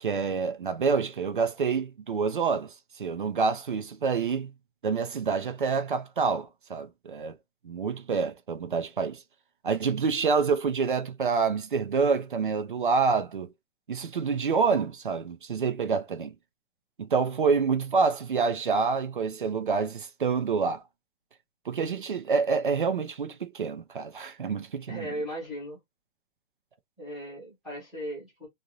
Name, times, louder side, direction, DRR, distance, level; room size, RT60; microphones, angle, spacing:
voice 1, 0.0-4.5 4.8-7.3 7.6-9.2 9.6-13.5 13.9-16.3 17.0-20.8 21.7-25.1, right 5 dB, 40° right, 0.5 m, -27 dB
voice 2, 24.9-25.8 27.0-28.5, equal, ahead, 0.8 m, -37 dB
2.6 x 2.5 x 2.9 m
hypercardioid pair, 175°, 40 cm